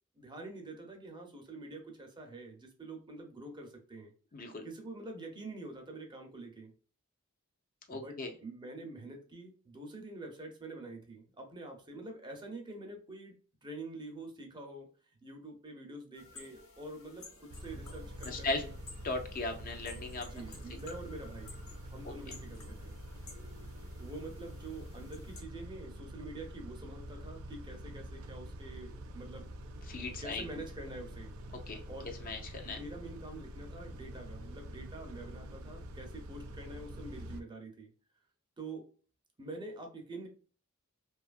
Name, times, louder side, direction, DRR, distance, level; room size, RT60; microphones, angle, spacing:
voice 1, 0.2-4.1 4.6-6.7 7.9-13.3 13.6-14.9 15.2-18.7 20.2-21.6 21.8-23.0 24.0-29.5 30.2-31.3 31.9-32.1 32.6-37.9 38.6-38.9 39.4-40.3, right 2 dB, 20° right, 3 dB, 0.6 m, -46 dB
voice 2, 4.3-4.6 7.9-8.3 18.2-18.6 19.0-20.3 22.0-22.1 29.9-30.4 31.7-31.8 32.2-32.8, left 3 dB, 45° left, 4 dB, 0.4 m, -37 dB
sound 1, 16.1-25.4, left 3 dB, 80° left, 0.8 m, -54 dB
Car / Idling / Accelerating revving vroom, 17.5-37.4, equal, 85° right, 0.4 m, -46 dB
2.7 x 2.3 x 2.3 m, 0.39 s
head